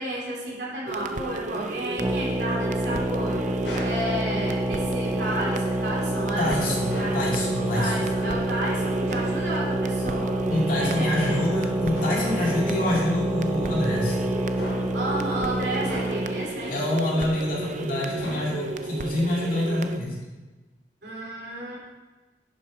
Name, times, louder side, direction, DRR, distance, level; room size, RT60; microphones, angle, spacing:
voice 1, 0.0-3.4 3.8-7.2 7.5-10.4 10.8-11.7 14.9-16.8 21.0-21.8, right 1 dB, 70° right, -5 dB, 3.6 m, -32 dB
sound 1, 0.9-20.0, right 2 dB, 45° right, 0.5 m, -34 dB
sound 2, 2.0-16.5, right 1 dB, 15° right, 0.8 m, -27 dB
sound 3, 3.6-4.1 6.9-7.3 9.1-9.5 11.9-12.4 12.9-13.3 14.6-15.0 15.8-16.4 18.2-18.8, equal, 75° left, 3.5 m, -37 dB
voice 2, 6.4-8.1 10.5-14.2 16.7-20.2, left 1 dB, 50° left, -4 dB, 2.6 m, -26 dB
11.0 x 6.2 x 4.7 m, 1.2 s
head